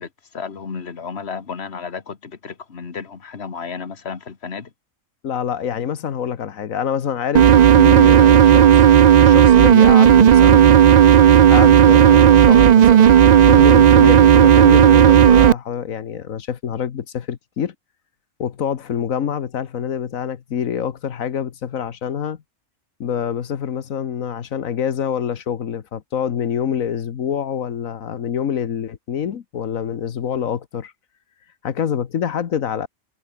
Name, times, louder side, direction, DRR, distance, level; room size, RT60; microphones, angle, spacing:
voice 1, 0.0-4.7, left 5 dB, 50° left, 1.9 m, -33 dB
voice 2, 5.2-8.8 9.2-10.7 11.5-17.7 18.4-22.4 23.0-30.9 31.6-32.9, left 8 dB, 90° left, 1.6 m, -26 dB
sound 1, 7.3-15.5, right 9 dB, 85° right, 0.3 m, -10 dB
omnidirectional pair, 1.4 m